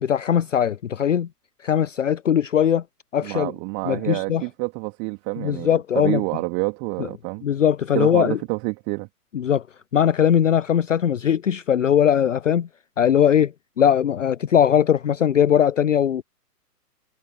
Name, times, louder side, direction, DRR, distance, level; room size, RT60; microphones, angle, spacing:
voice 1, 0.0-1.3 1.6-2.8 3.1-3.5 3.9-4.4 5.4-6.2 7.0-7.1 7.4-8.4 9.3-9.6 9.9-12.7 13.0-16.2, left 9 dB, 50° left, 0.6 m, -20 dB
voice 2, 3.2-7.4 7.9-9.1, right 37 dB, 25° right, 2.8 m, -28 dB
figure-of-eight pair, 125°, 48 cm